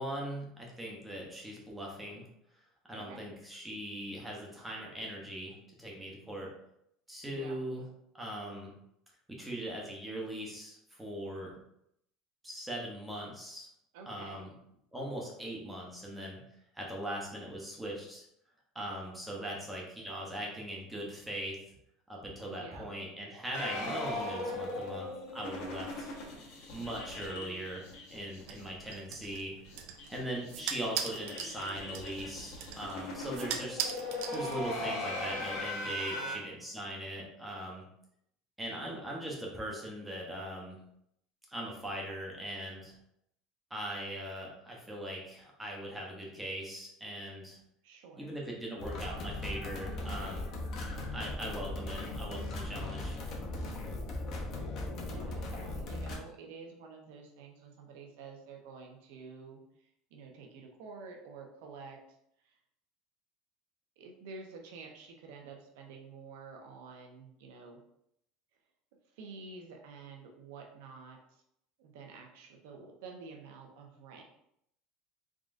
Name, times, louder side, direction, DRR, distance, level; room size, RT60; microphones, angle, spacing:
voice 1, 0.0-2.2 2.9-6.5 7.1-7.8 8.1-8.7 9.3-11.5 12.4-13.7 14.1-14.5 14.9-18.2 18.7-21.6 22.1-26.1 26.7-29.5 30.1-33.8 34.3-37.8 38.6-40.8 41.5-43.0 43.7-47.6 48.2-50.5 51.1-53.2, right 1 dB, 5° right, -2 dB, 0.7 m, -40 dB
voice 2, 7.2-7.6 13.9-14.5 19.4-19.7 22.5-22.9 33.2-33.6 35.9-36.4 47.8-48.3 54.8-59.6 60.1-62.0 62.4-62.6 64.0-67.8 69.1-71.4 71.8-74.2, right 4 dB, 75° right, 2 dB, 0.8 m, -49 dB
sound 1, 23.5-28.6 28.9-29.0 29.3-29.4 29.6-36.3, left 2 dB, 60° left, 1.0 m, -39 dB
sound 2, 28.5-34.9, right 8 dB, 60° right, 0.4 m, -41 dB
sound 3, 48.8-56.2, left 2 dB, 40° left, 0.7 m, -38 dB
3.8 x 3.7 x 2.5 m, 0.75 s
cardioid pair, 180°, 0 cm